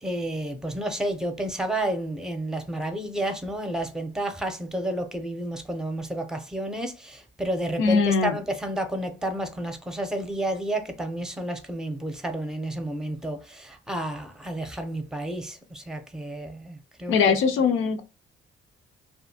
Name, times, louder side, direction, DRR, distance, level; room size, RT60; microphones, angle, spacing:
voice 1, 0.0-17.4, right 1 dB, 5° right, 0.6 m, -31 dB
voice 2, 7.8-8.4 17.1-18.0, left 5 dB, 85° left, 0.5 m, -21 dB
2.7 x 2.4 x 2.7 m
cardioid pair, 90°, 20 cm